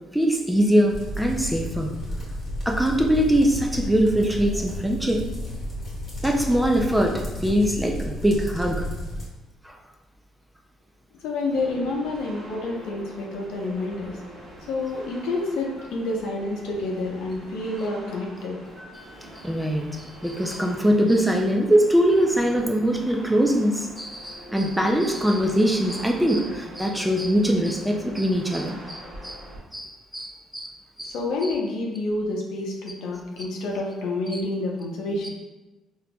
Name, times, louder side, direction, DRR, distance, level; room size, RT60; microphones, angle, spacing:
voice 1, 0.1-1.9 2.7-5.2 6.2-8.8 9.6-9.8 18.8-29.4 29.7-31.1 31.4-31.5 34.3-34.4 35.2-35.3, equal, 5° right, 1 dB, 0.4 m, -22 dB
sound 1, 0.9-9.3, equal, 35° left, 1.2 m, -32 dB
voice 2, 11.2-14.2 14.7-18.6 31.0-35.3, left 2 dB, 80° left, -1 dB, 0.7 m, -28 dB
sound 2, 11.5-29.6, equal, 35° right, 1.2 m, -43 dB
4.1 x 2.7 x 2.2 m, 1.1 s
cardioid pair, 110°, 0 cm